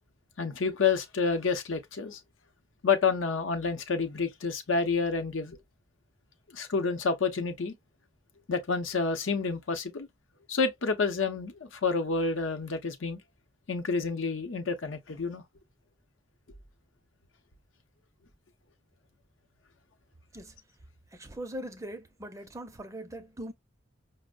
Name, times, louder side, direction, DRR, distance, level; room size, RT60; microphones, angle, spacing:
voice 1, 0.4-2.2 2.8-5.6 6.5-7.7 8.5-10.1 10.5-13.2 13.7-15.4, left 4 dB, 85° left, 0.7 m, -29 dB
voice 2, 21.2-23.5, right 1 dB, 15° right, 0.5 m, -40 dB
5.1 x 2.0 x 2.2 m
head